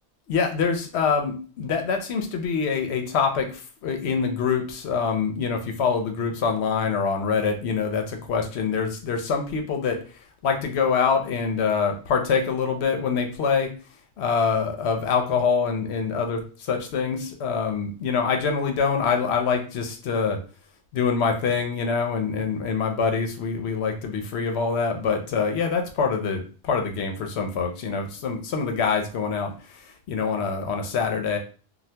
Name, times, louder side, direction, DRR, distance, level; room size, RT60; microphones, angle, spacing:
voice 1, 0.3-10.0 10.4-13.7 14.2-20.4 20.9-31.4, left 5 dB, 75° left, 4 dB, 0.9 m, -25 dB
2.7 x 2.3 x 3.2 m, 0.37 s
omnidirectional pair, 1.1 m